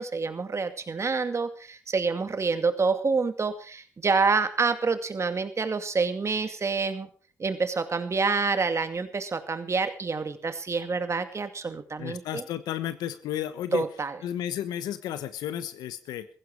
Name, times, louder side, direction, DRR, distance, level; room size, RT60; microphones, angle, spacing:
voice 1, 0.0-7.1 7.4-12.4 13.7-14.2, right 4 dB, 45° right, 9 dB, 2.3 m, -27 dB
voice 2, 12.0-13.8 14.2-16.3, left 11 dB, 85° left, 13 dB, 1.1 m, -33 dB
15.5 x 15.5 x 4.8 m, 0.39 s
supercardioid pair, 50°, 7 cm